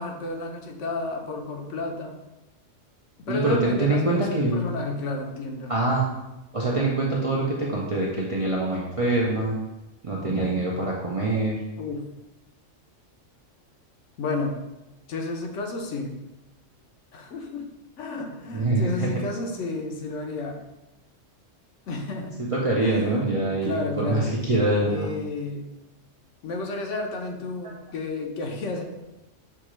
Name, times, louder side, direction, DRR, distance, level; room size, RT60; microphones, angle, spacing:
voice 1, 0.0-2.2 3.2-5.7 11.8-12.0 14.2-14.6 15.1-16.2 17.1-17.6 18.0-20.6 21.9-22.4 22.8-23.4 23.6-24.3 24.9-25.7 26.4-28.8, left 3 dB, 70° left, 3 dB, 1.0 m, -31 dB
voice 2, 3.3-4.7 5.7-6.0 6.5-9.6 10.0-11.6 18.5-19.1 22.4-25.1 27.6-27.7, right 2 dB, 45° right, -5 dB, 0.4 m, -24 dB
6.6 x 2.4 x 3.0 m, 1.0 s
omnidirectional pair, 1.3 m